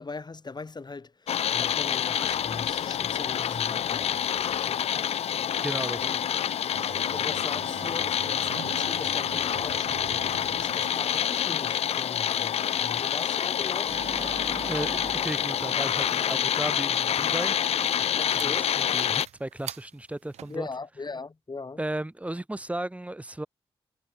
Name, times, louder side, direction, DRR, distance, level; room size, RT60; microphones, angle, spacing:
voice 1, 0.0-4.8 6.0-6.2 7.1-14.0 18.2-18.7 20.5-21.8, left 4 dB, 40° left, 5.5 m, -40 dB
sound 1, 1.3-19.3, left 9 dB, 70° left, 0.5 m, -27 dB
voice 2, 5.6-6.3 14.7-17.6 17.8-18.1 18.4-20.7 21.8-23.5, right 1 dB, 10° right, 1.0 m, -35 dB
sound 2, 6.7-20.6, right 11 dB, 90° right, 1.4 m, -46 dB
Organ, 13.8-17.0, right 4 dB, 40° right, 2.4 m, -41 dB
cardioid pair, 55°, 11 cm